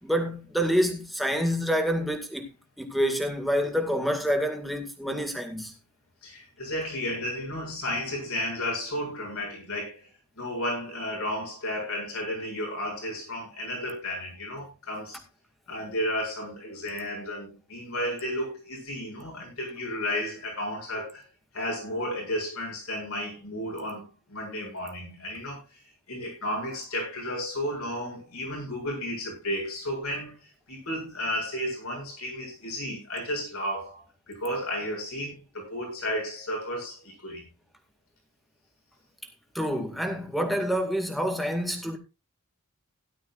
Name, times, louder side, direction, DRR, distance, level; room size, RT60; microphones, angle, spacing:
voice 1, 0.0-2.5 2.8-5.7 39.5-42.0, equal, ahead, 2.2 m, -27 dB
voice 2, 6.2-10.1 10.4-15.2 15.7-21.2 21.5-25.8 26.1-37.4, left 1 dB, 75° left, 7.6 m, -33 dB
17.0 x 12.0 x 2.5 m
head